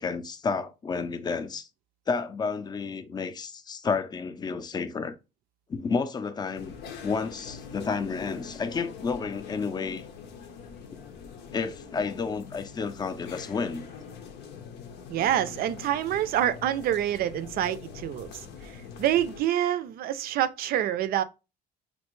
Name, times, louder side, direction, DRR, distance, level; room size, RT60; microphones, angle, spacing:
voice 1, 0.0-1.7 2.1-5.1 5.7-6.7 7.0-10.1 11.5-13.9, left 5 dB, 25° left, 0.4 m, -31 dB
sound 1, 6.5-19.4, left 6 dB, 85° left, 0.7 m, -44 dB
voice 2, 15.1-18.3 18.6-21.2, right 11 dB, 60° right, 0.4 m, -27 dB
3.2 x 2.6 x 3.0 m
cardioid pair, 110°, 17 cm